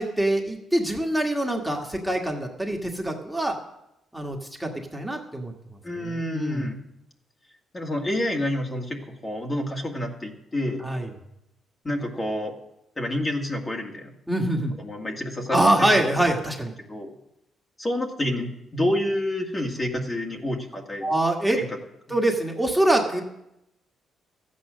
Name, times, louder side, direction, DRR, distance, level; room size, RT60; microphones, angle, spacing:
voice 1, 0.0-3.6 4.1-5.5 6.0-6.7 10.8-11.1 14.3-14.7 15.5-16.7 21.0-21.6 22.1-23.2, right 1 dB, 5° right, 0 dB, 1.8 m, -24 dB
voice 2, 5.8-6.8 7.7-10.8 11.8-12.6 13.0-14.1 14.8-16.0 16.9-17.1 17.8-21.1 21.6-21.7, left 1 dB, 25° left, 1 dB, 1.9 m, -28 dB
13.5 x 8.6 x 6.4 m, 0.85 s
cardioid pair, 90°, 0 cm